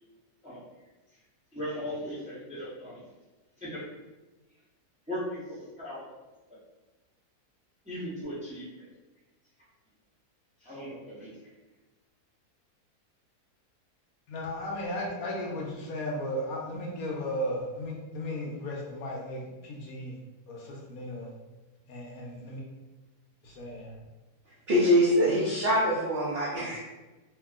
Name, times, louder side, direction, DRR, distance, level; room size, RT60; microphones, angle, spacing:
voice 1, 1.5-3.0 3.6-3.9 5.1-6.0 7.8-8.9 10.6-11.3, equal, 10° right, -10 dB, 0.4 m, -38 dB
voice 2, 14.3-20.2 20.5-21.3 21.9-22.6 23.4-23.9, left 1 dB, 70° left, -2 dB, 1.0 m, -35 dB
voice 3, 24.7-26.8, equal, 75° right, -6 dB, 0.5 m, -24 dB
2.8 x 2.6 x 2.4 m, 1.2 s
omnidirectional pair, 1.7 m